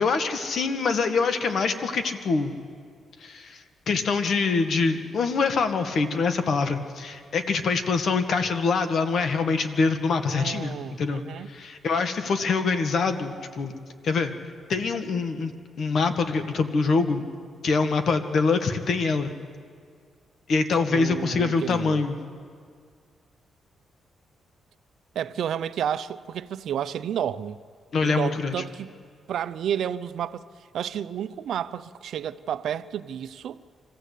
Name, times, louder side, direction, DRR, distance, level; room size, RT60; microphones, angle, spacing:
voice 1, 0.0-2.5 3.2-13.7 14.0-14.3 14.7-15.5 15.8-17.2 17.6-19.3 20.5-22.2 27.9-28.5, left 4 dB, 60° left, 1.7 m, -24 dB
voice 2, 10.3-11.5 20.9-22.0 25.1-27.6 28.0-28.9 29.3-30.4 30.7-33.6, right 9 dB, 75° right, 0.6 m, -31 dB
25.5 x 15.5 x 8.4 m
cardioid pair, 90°, 0 cm